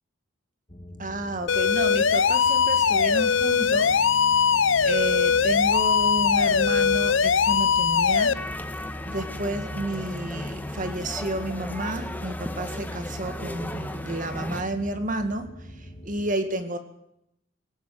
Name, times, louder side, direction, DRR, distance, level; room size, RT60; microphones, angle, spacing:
sound 1, 0.7-16.3, equal, 30° left, 1.8 m, -41 dB
voice 1, 1.0-4.0 4.9-8.5 9.1-16.8, right 1 dB, 40° right, 8 dB, 2.0 m, -31 dB
sound 2, 1.5-8.3, left 6 dB, 70° left, 0.7 m, -21 dB
sound 3, 8.3-14.6, left 1 dB, 10° left, 1.4 m, -36 dB
18.5 x 18.5 x 7.8 m, 0.79 s
head